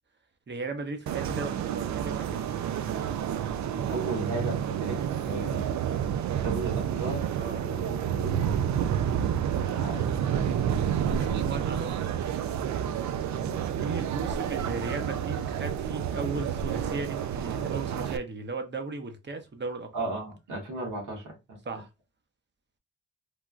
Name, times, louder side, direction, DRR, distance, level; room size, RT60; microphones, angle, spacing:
voice 1, 0.5-2.4 7.4-7.6 11.1-12.1 13.8-20.1 21.7-21.9, right 3 dB, 35° right, 0.8 m, -36 dB
sound 1, 1.1-18.2, right 9 dB, 70° right, 0.4 m, -29 dB
voice 2, 3.9-5.6 6.4-7.2 7.6-10.1 13.3-13.6 19.9-21.6, right 2 dB, 85° right, 1.4 m, -36 dB
3.3 x 2.2 x 2.4 m
cardioid pair, 55°, 30 cm